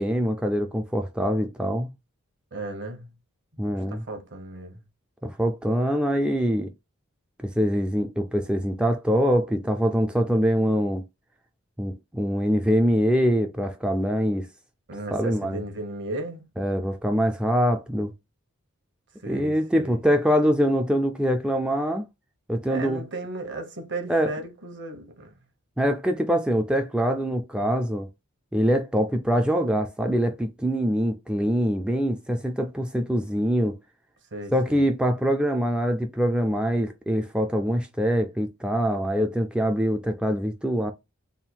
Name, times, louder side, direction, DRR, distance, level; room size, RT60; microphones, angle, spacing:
voice 1, 0.0-1.9 3.6-4.0 5.2-6.7 7.4-11.0 11.8-14.5 15.1-15.6 16.6-18.1 19.3-22.0 22.5-23.0 24.1-24.3 25.8-28.1 28.5-33.8 34.5-40.9, equal, 5° right, 0.3 m, -24 dB
voice 2, 2.5-3.1 3.7-4.8 14.9-16.5 19.2-20.0 22.7-25.3 34.3-34.8, right 2 dB, 55° right, 1.1 m, -35 dB
3.6 x 2.3 x 4.3 m
head